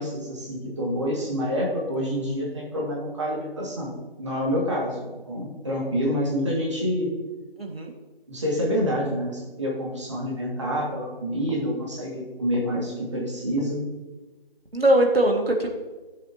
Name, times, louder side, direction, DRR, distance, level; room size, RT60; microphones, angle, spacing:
voice 1, 0.0-7.1 8.3-13.8, equal, 30° right, -3 dB, 2.1 m, -27 dB
voice 2, 7.6-7.9 14.7-15.7, right 1 dB, 85° right, 2 dB, 2.0 m, -21 dB
14.0 x 7.8 x 2.9 m, 1.2 s
figure-of-eight pair, 165°, 29 cm